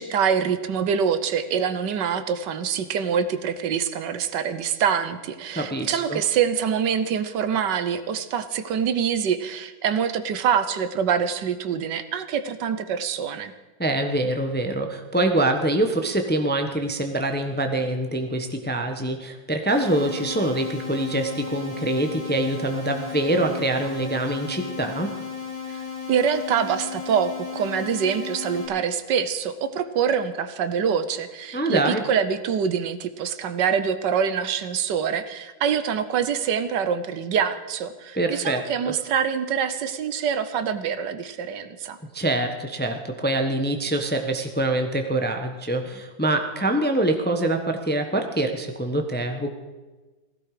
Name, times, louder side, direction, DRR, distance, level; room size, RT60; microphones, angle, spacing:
voice 1, 0.0-13.5 25.7-25.8 26.1-42.0, right 7 dB, 75° right, 12 dB, 1.5 m, -25 dB
voice 2, 5.5-6.2 13.8-25.1 31.5-32.0 38.1-38.9 42.1-49.5, right 1 dB, 10° left, 5 dB, 0.8 m, -25 dB
sound 1, 19.7-28.7, left 6 dB, 25° left, 6.3 m, -35 dB
16.5 x 15.5 x 4.9 m, 1.2 s
omnidirectional pair, 2.0 m